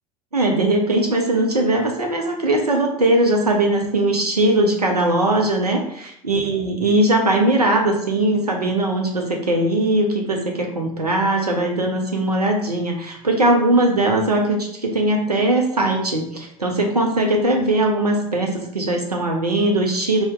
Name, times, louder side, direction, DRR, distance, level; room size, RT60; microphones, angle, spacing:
voice 1, 0.3-20.2, right 1 dB, 90° right, 2 dB, 0.6 m, -20 dB
4.3 x 2.2 x 3.7 m, 0.70 s
figure-of-eight pair, 65°, 19 cm